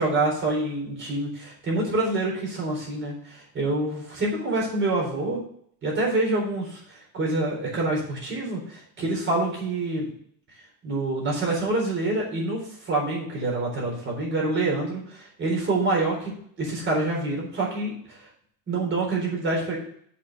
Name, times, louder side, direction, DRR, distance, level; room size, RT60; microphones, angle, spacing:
voice 1, 0.0-5.4 5.8-10.1 10.8-18.2 18.7-19.8, right 2 dB, 30° right, -2 dB, 4.0 m, -26 dB
7.2 x 5.8 x 6.6 m, 0.62 s
cardioid pair, 160°, 39 cm